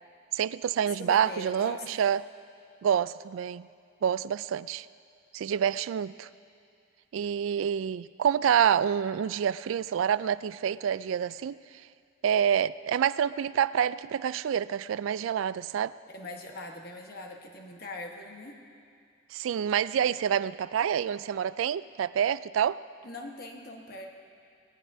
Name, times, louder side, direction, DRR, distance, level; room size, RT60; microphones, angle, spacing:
voice 1, 0.3-2.2 2.8-3.7 4.0-4.9 5.3-6.3 7.1-11.6 12.2-15.9 19.3-22.8, right 8 dB, 85° right, 17 dB, 0.3 m, -27 dB
voice 2, 0.8-2.0 16.1-18.6 23.0-24.1, left 2 dB, 50° left, 2 dB, 1.2 m, -41 dB
21.5 x 17.5 x 2.7 m, 2.3 s
head